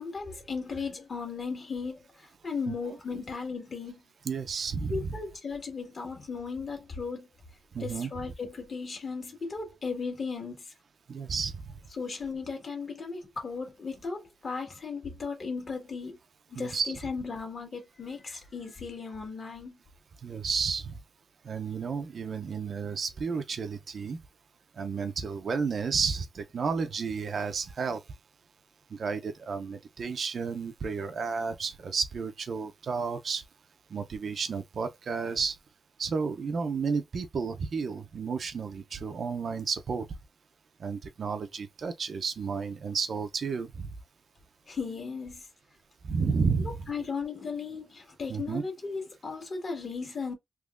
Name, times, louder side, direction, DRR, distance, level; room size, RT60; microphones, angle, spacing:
voice 1, 0.0-4.0 4.9-7.3 7.8-10.7 11.9-16.2 16.5-19.8 44.7-45.5 46.6-50.3, left 5 dB, 45° left, 1.5 m, -36 dB
voice 2, 4.3-5.1 7.7-8.1 11.1-11.5 16.6-16.9 20.2-21.0 21.4-24.2 24.8-28.0 28.9-33.4 33.9-35.6 36.0-40.1 40.8-43.9 46.0-46.9 48.3-48.6, right 5 dB, 50° right, 0.5 m, -32 dB
3.5 x 3.0 x 2.4 m
wide cardioid pair, 145°, 0 cm